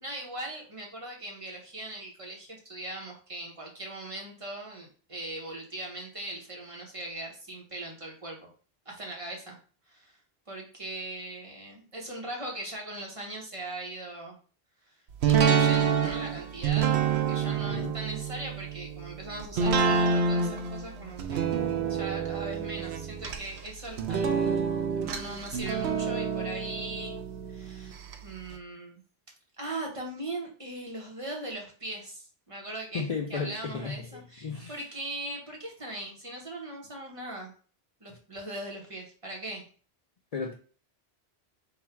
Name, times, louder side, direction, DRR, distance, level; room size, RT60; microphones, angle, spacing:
voice 1, 0.0-8.5 8.9-9.6 9.9-10.2 10.5-14.4 15.3-21.5 21.9-27.1 27.5-29.0 29.6-33.0 33.3-37.5 38.0-39.6, right 1 dB, 35° right, -1 dB, 1.0 m, -40 dB
sound 1, 15.2-28.2 28.5-28.6, right 6 dB, 85° right, 0.9 m, -28 dB
voice 2, 17.5-18.0 32.9-34.0 34.4-34.8 40.3-40.5, left 5 dB, 50° left, 2 dB, 0.5 m, -34 dB
3.9 x 2.4 x 4.2 m, 0.40 s
omnidirectional pair, 1.1 m